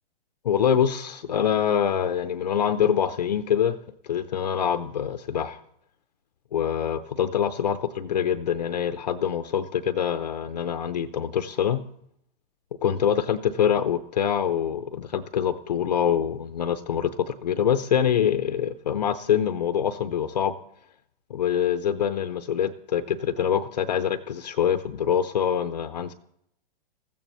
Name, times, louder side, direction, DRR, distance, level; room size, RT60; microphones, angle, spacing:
voice 1, 0.4-3.8 4.0-5.6 6.5-11.8 12.8-20.5 21.3-26.1, left 8 dB, 45° left, 11 dB, 0.6 m, -25 dB
20.0 x 15.0 x 3.1 m, 0.73 s
hypercardioid pair, 180°, 30 cm